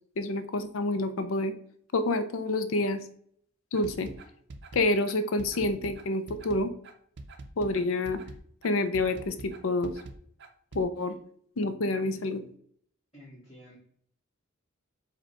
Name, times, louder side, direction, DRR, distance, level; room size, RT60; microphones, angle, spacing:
voice 1, 0.2-1.5 1.9-3.0 3.7-4.1 4.7-6.7 7.6-8.2 8.6-9.9 10.7-11.2 11.6-12.4, left 2 dB, 85° left, 10 dB, 0.5 m, -28 dB
sound 1, 3.7-10.8, right 2 dB, 55° right, 0.5 m, -45 dB
voice 2, 13.1-13.8, equal, 25° left, -8 dB, 1.7 m, -50 dB
4.9 x 2.3 x 4.4 m, 0.62 s
head